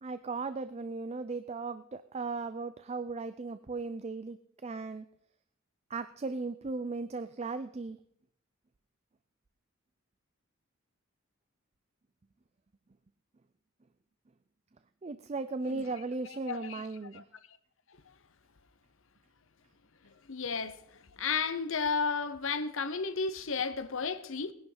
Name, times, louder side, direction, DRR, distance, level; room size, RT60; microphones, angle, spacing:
voice 1, 0.0-4.4 4.6-5.1 5.9-8.0 15.0-17.2, right 3 dB, 30° right, 0.4 m, -37 dB
voice 2, 16.3-16.9 17.1-17.2 20.3-20.8 21.1-24.5, left 5 dB, 65° left, 0.9 m, -33 dB
19.5 x 10.5 x 3.9 m
head